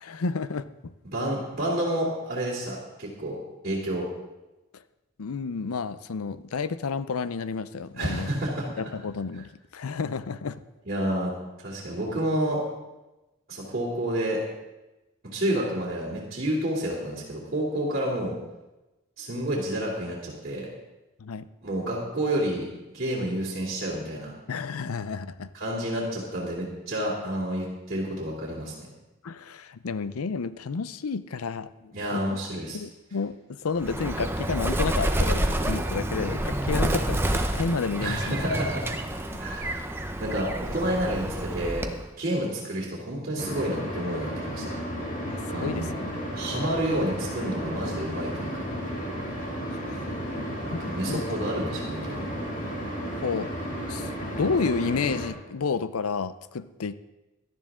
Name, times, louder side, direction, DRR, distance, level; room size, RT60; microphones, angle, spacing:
voice 1, 0.0-0.9 5.2-8.3 8.8-10.6 21.2-21.5 24.5-25.5 29.2-32.4 32.7-38.4 45.2-46.2 49.1-49.4 50.7-51.2 53.2-53.5 53.9-54.1 54.4-56.9, left 5 dB, 85° left, 15 dB, 0.6 m, -31 dB
voice 2, 1.1-3.4 3.6-4.1 8.0-8.6 10.8-11.3 11.6-12.6 13.5-14.4 15.3-18.3 19.2-20.7 21.6-22.7 22.9-24.3 25.5-28.9 31.9-32.8 38.0-38.9 39.4-39.8 40.2-41.9 42.2-44.7 45.5-45.9 46.3-48.7 50.7-52.3, right 1 dB, 40° right, -7 dB, 3.0 m, -29 dB
Bird, 33.8-42.1, right 1 dB, 10° right, 0.7 m, -28 dB
Heating System Fan noise, 43.4-55.3, equal, 35° left, 2.6 m, -33 dB
18.0 x 12.0 x 3.7 m, 1.0 s
head